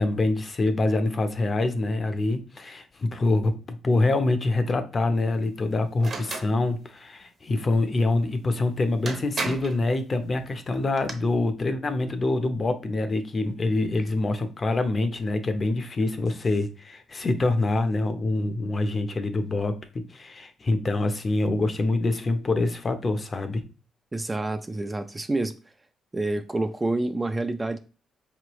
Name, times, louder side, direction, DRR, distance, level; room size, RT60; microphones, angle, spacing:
voice 1, 0.0-23.6, left 2 dB, 35° left, 0.6 m, -25 dB
sound 1, 6.0-6.5 8.6-8.7 9.1-9.8 10.7-11.1, right 3 dB, 45° right, 0.8 m, -32 dB
voice 2, 24.1-25.5 26.1-27.8, right 2 dB, 15° right, 0.3 m, -28 dB
4.4 x 3.1 x 3.0 m
cardioid pair, 90°, 0 cm